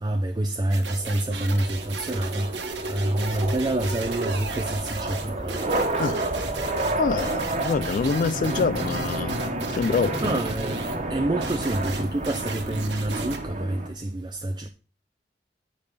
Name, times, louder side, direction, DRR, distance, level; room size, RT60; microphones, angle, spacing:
voice 1, 0.0-5.6 10.2-14.7, right 1 dB, 25° right, 0.5 m, -27 dB
sound 1, 0.7-11.0 11.4-13.4, right 5 dB, 80° right, 1.4 m, -38 dB
sound 2, 0.9-13.9, right 2 dB, 40° right, 1.3 m, -30 dB
sound 3, 3.3-13.5, equal, ahead, 1.6 m, -41 dB
voice 2, 6.0-6.4 7.0-9.5 9.8-10.4, left 5 dB, 50° left, 0.3 m, -26 dB
8.8 x 5.1 x 5.4 m
head